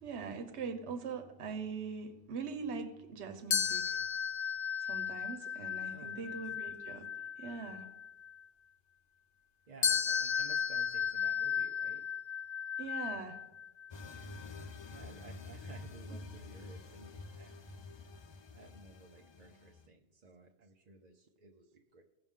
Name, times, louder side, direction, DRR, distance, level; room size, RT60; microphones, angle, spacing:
voice 1, 0.0-4.0 4.8-7.1 7.4-7.8 12.8-13.4 16.1-16.2, right 5 dB, 70° right, 7 dB, 1.1 m, -42 dB
sound 1, 3.5-8.3 9.8-14.4, left 8 dB, 70° left, 1.3 m, -35 dB
voice 2, 5.9-6.4 9.7-12.0 14.9-17.8 18.5-22.0, right 3 dB, 45° right, 2 dB, 0.6 m, -56 dB
sound 2, 13.9-19.9, left 3 dB, 45° left, 0.3 m, -49 dB
16.0 x 5.8 x 3.6 m, 1.0 s
omnidirectional pair, 1.2 m